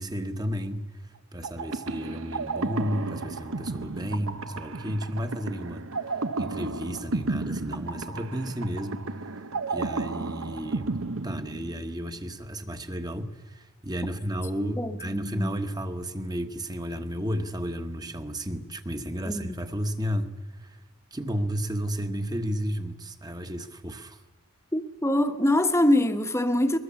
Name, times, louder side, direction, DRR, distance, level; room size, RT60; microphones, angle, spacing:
voice 1, 0.0-9.1 9.7-11.0 11.2-20.8 21.1-24.2, equal, 20° right, 1.3 m, -33 dB
sound 1, 1.4-12.1, right 3 dB, 60° right, 0.9 m, -33 dB
voice 2, 14.6-15.5 19.2-19.6 24.7-26.8, left 1 dB, 10° left, 1.2 m, -24 dB
22.5 x 21.5 x 7.1 m
head